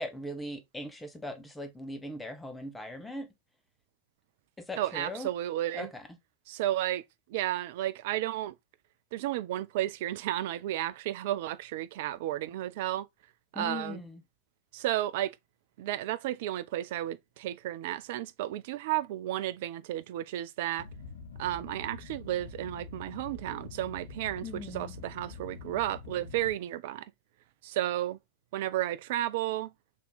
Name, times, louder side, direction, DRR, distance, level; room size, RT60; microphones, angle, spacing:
voice 1, 0.0-3.3 4.6-5.3 5.7-6.1 13.5-14.2 24.4-24.9, left 1 dB, 5° left, 0.8 m, -39 dB
voice 2, 4.8-5.9 6.5-7.0 7.3-8.5 9.1-13.1 13.5-14.0 14.7-15.3 15.8-20.9 21.4-27.0 27.6-28.2 28.5-29.7, right 14 dB, 50° right, 0.4 m, -33 dB
sound 1, 20.8-26.5, left 4 dB, 70° left, 0.9 m, -45 dB
3.5 x 2.8 x 3.9 m
figure-of-eight pair, 90°, 0 cm